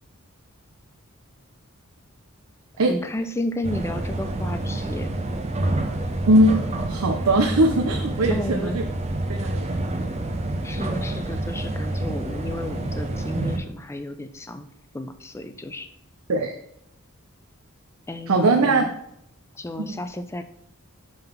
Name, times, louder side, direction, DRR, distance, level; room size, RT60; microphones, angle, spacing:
voice 1, 2.9-5.1 8.3-8.8 10.6-14.7 14.9-15.9 18.1-18.9 19.6-20.4, left 1 dB, 10° left, 9 dB, 0.4 m, -32 dB
sound 1, 3.6-13.6, right 1 dB, 30° right, 0.6 m, -28 dB
voice 2, 6.3-6.6 6.9-8.8 9.3-10.1 16.3-16.6 18.3-18.8 19.8-19.9, right 1 dB, 80° right, 4 dB, 0.6 m, -20 dB
5.4 x 3.9 x 5.7 m, 0.79 s
head